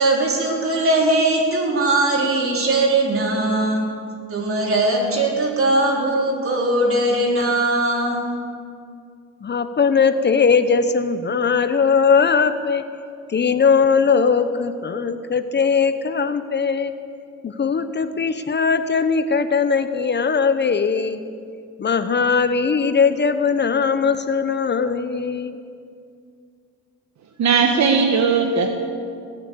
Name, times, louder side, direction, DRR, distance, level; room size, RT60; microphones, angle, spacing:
voice 1, 0.0-3.8 4.3-8.3, right 2 dB, 45° right, -1 dB, 4.0 m, -20 dB
voice 2, 9.4-12.8 13.3-16.9 17.4-21.2 21.8-25.5, left 5 dB, 35° left, 10 dB, 0.8 m, -19 dB
voice 3, 27.4-28.7, right 5 dB, 65° right, 4 dB, 1.3 m, -17 dB
19.5 x 8.4 x 8.4 m, 2.3 s
cardioid pair, 90°, 30 cm